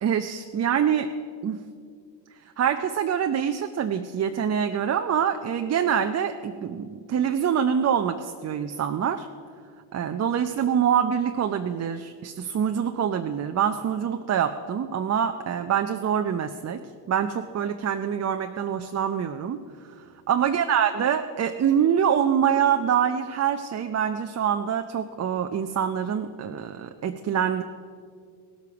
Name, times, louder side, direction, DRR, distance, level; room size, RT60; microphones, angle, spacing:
voice 1, 0.0-1.1 1.4-1.6 2.6-9.3 9.9-27.6, right 8 dB, 30° right, 6 dB, 0.6 m, -25 dB
17.0 x 8.2 x 5.9 m, 2.1 s
supercardioid pair, 75°, 49 cm